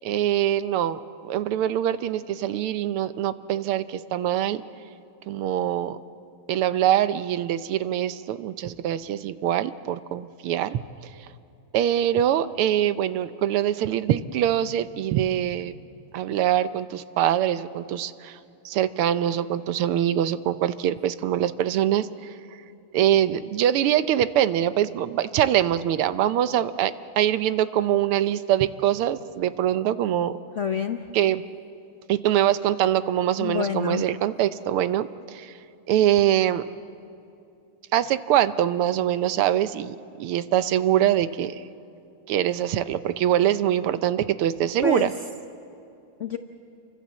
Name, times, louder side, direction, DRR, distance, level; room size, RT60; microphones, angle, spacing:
voice 1, 0.0-4.6 5.3-6.0 6.5-11.1 11.7-15.7 16.1-18.4 18.6-22.4 22.9-30.4 31.1-31.4 32.1-35.5 35.9-36.6 37.9-41.6 42.3-45.1, right 11 dB, 90° right, 13 dB, 1.7 m, -23 dB
voice 2, 30.6-31.0 33.4-34.0 44.8-45.1 46.2-46.4, left 7 dB, 60° left, 6 dB, 0.7 m, -27 dB
28.5 x 24.5 x 7.4 m, 2.6 s
omnidirectional pair, 2.4 m